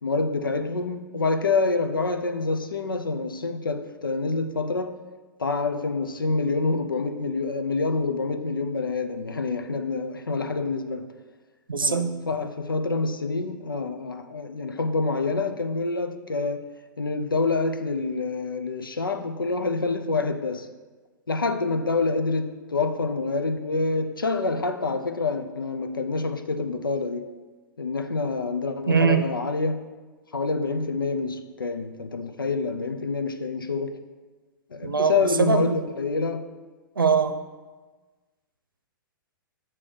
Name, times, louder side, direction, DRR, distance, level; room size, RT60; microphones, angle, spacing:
voice 1, 0.0-5.0 5.4-11.1 11.8-16.7 17.0-20.7 21.3-27.3 27.8-29.9 30.3-34.0 34.7-36.5, left 3 dB, 80° left, 0.6 m, -27 dB
voice 2, 11.7-12.1 28.9-29.2 34.8-35.7 37.0-37.3, right 5 dB, 80° right, 0.6 m, -21 dB
8.4 x 2.9 x 6.3 m
figure-of-eight pair, 110°, 11 cm